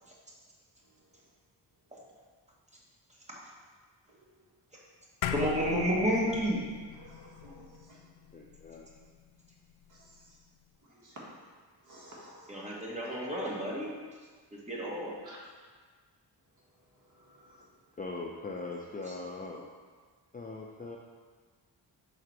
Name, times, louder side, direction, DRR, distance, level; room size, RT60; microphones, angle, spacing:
sound 1, 5.2-9.8, left 8 dB, 80° left, 0.5 m, -39 dB
voice 1, 5.3-6.6 12.5-13.9 14.5-15.2 19.1-19.2, equal, 15° right, -4 dB, 1.6 m, -31 dB
voice 2, 7.0-7.6 7.9-8.0 11.0-11.1 11.9-12.7 15.2-15.4 17.4-17.6, right 1 dB, 40° right, -4 dB, 1.7 m, -53 dB
voice 3, 8.3-8.9 18.0-19.7 20.3-21.0, left 3 dB, 20° left, -1 dB, 0.5 m, -40 dB
5.9 x 3.9 x 4.7 m, 1.6 s
cardioid pair, 80°, 46 cm